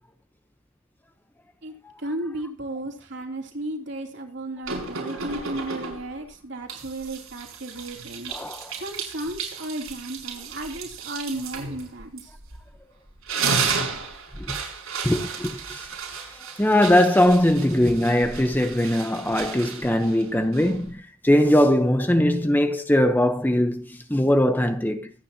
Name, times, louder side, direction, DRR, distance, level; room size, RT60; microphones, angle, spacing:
voice 1, 1.6-8.3 8.7-12.3 20.0-20.1, right 1 dB, 55° right, 3.2 m, -34 dB
sound 1, 4.7-6.2 6.7-12.8 13.1-20.9, right 5 dB, 90° right, 5.4 m, -33 dB
voice 2, 8.3-8.7 14.4-14.6 15.0-15.9 16.6-25.1, left 1 dB, 10° left, 0.9 m, -21 dB
24.5 x 9.7 x 2.9 m
head